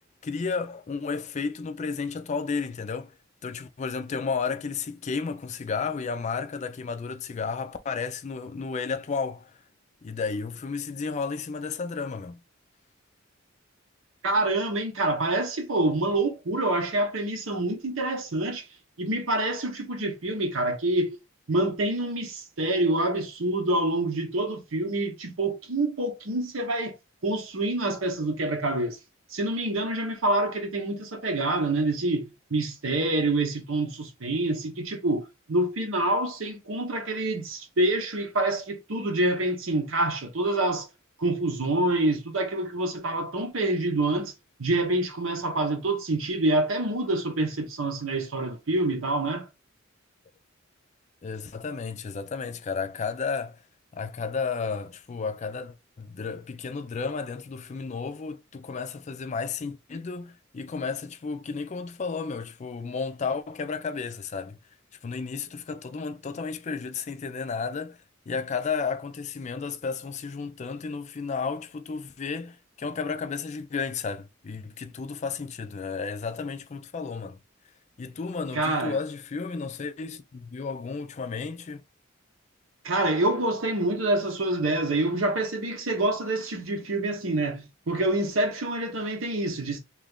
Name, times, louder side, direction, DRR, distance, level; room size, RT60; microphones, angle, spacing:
voice 1, 0.2-3.1 3.4-9.5 10.0-12.4 51.2-53.6 53.9-64.6 65.0-68.0 68.3-77.4 78.0-81.8, left 5 dB, 35° left, 0.4 m, -32 dB
voice 2, 14.2-18.6 19.0-21.2 21.5-27.0 27.2-29.0 29.3-40.9 41.2-44.3 44.6-49.4 78.5-79.0 82.8-89.8, right 2 dB, 85° right, 0.9 m, -26 dB
3.0 x 2.4 x 3.4 m
head